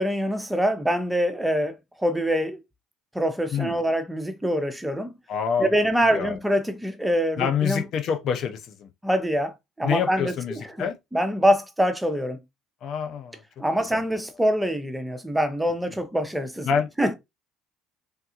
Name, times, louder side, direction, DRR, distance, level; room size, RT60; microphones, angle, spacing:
voice 1, 0.0-2.6 3.1-5.1 5.6-7.8 9.0-12.4 13.6-16.7 17.0-17.1, equal, 5° right, 0.6 m, -25 dB
voice 2, 5.3-5.7 6.0-6.4 7.4-8.9 9.8-10.9 12.8-13.4 13.9-14.0 16.6-16.9, left 7 dB, 55° left, 0.5 m, -26 dB
3.5 x 2.3 x 2.8 m
supercardioid pair, 85°, 0 cm